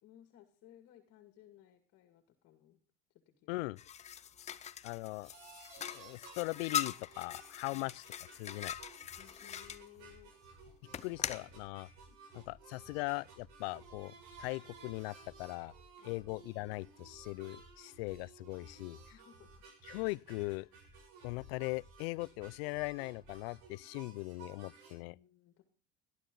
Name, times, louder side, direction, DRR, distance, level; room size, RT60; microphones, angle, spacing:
voice 1, 0.0-2.8 3.1-3.6 9.2-10.3 18.9-19.6 25.0-25.6, left 12 dB, 50° left, 2.2 m, -60 dB
voice 2, 3.5-3.8 4.4-4.5 4.8-5.3 5.9-8.0 8.3-8.7 11.0-11.9 12.3-14.1 14.4-15.7 16.0-19.0 19.9-20.7 21.2-25.1, left 25 dB, 75° left, 0.5 m, -40 dB
sound 1, 3.8-9.8 10.9-11.5, left 9 dB, 20° left, 0.5 m, -41 dB
sound 2, 5.2-24.9, right 5 dB, 65° right, 6.8 m, -57 dB
sound 3, 8.7-23.7, right 2 dB, 15° right, 5.0 m, -62 dB
17.0 x 11.5 x 3.9 m
supercardioid pair, 125°, 30 cm